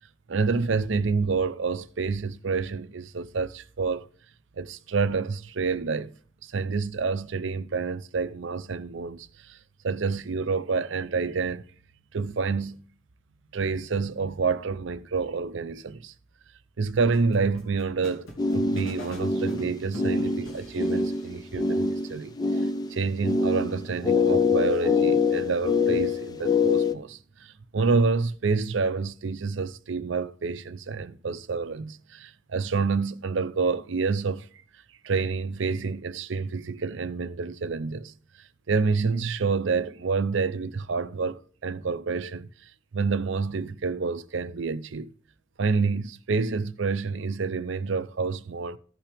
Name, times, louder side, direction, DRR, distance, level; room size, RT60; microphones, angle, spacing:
voice 1, 0.3-4.1 4.6-6.1 6.4-9.6 9.8-11.7 12.1-12.8 13.5-16.1 16.8-34.5 35.0-38.1 38.7-45.1 45.6-48.8, right 4 dB, 65° right, 0.5 m, -28 dB
sound 1, 17.1-21.4, equal, 85° left, 2.6 m, -43 dB
sound 2, 18.4-26.9, left 4 dB, 20° left, 0.5 m, -25 dB
15.0 x 5.7 x 3.4 m
head